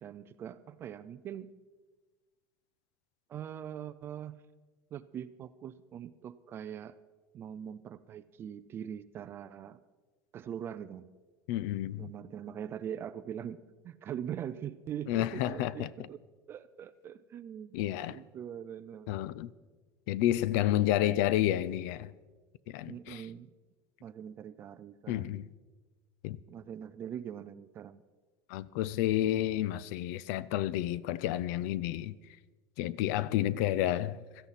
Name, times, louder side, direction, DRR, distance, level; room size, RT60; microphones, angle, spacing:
voice 1, 0.0-1.5 3.3-4.4 4.9-7.0 7.3-9.8 10.3-11.1 12.0-16.2 16.5-17.8 18.1-19.1 22.9-23.5 24.0-25.5 26.5-28.0, right 9 dB, 25° right, 0.3 m, -42 dB
voice 2, 11.5-12.1 15.1-16.1 17.7-18.2 19.1-19.5 20.1-22.1 22.7-23.3 25.1-25.5 26.2-26.4 28.5-32.2 32.8-34.2, left 13 dB, 60° left, 0.5 m, -30 dB
17.0 x 13.5 x 4.1 m
cardioid pair, 180°, 10 cm